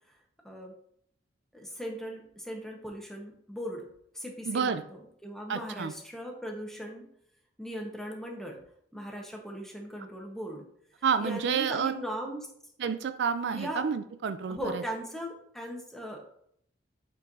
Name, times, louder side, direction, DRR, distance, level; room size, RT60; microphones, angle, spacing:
voice 1, 1.5-3.9 4.1-7.0 7.6-8.6 8.9-10.6 11.2-12.5 13.5-13.8 14.5-16.2, equal, ahead, 0 dB, 1.1 m, -38 dB
voice 2, 4.5-4.8 5.5-5.9 11.0-11.9 12.8-14.8, right 6 dB, 70° right, 11 dB, 0.4 m, -29 dB
8.1 x 4.5 x 2.7 m, 0.69 s
head